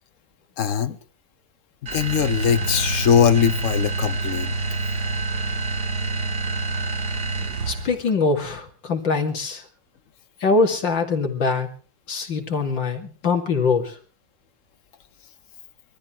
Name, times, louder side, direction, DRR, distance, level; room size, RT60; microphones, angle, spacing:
voice 1, 0.6-1.0 1.9-4.5, left 8 dB, 50° left, 1.1 m, -20 dB
sound 1, 1.9-8.0, right 3 dB, 60° right, 2.9 m, -27 dB
voice 2, 7.7-9.7 10.4-11.7 12.1-14.0, left 4 dB, 85° left, 3.3 m, -23 dB
23.0 x 14.0 x 4.5 m
omnidirectional pair, 2.0 m